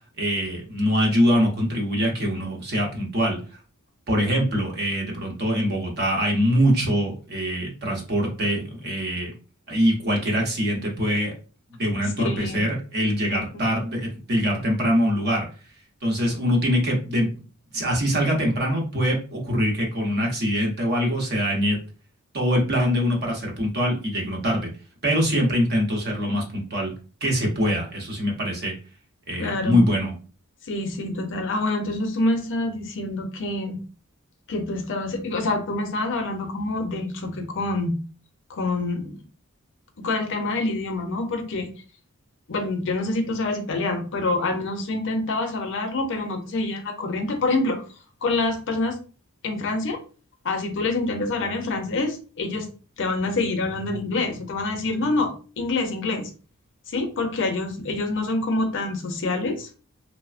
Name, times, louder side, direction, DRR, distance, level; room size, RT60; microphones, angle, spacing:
voice 1, 0.2-3.4 4.1-9.3 9.7-11.3 11.8-15.5 16.0-17.3 17.7-21.8 22.3-24.7 25.0-26.9 27.2-28.7 29.3-30.1, equal, 50° right, 0 dB, 0.8 m, -23 dB
voice 2, 12.2-12.7 13.3-13.6 29.4-29.9 30.7-33.8 34.5-38.0 38.5-39.2 40.0-41.7 42.5-47.8 48.2-49.0 49.4-50.0 50.4-52.7 53.0-56.3 56.9-59.9, left 2 dB, 60° left, 5 dB, 0.6 m, -26 dB
3.1 x 2.0 x 2.4 m, 0.37 s
head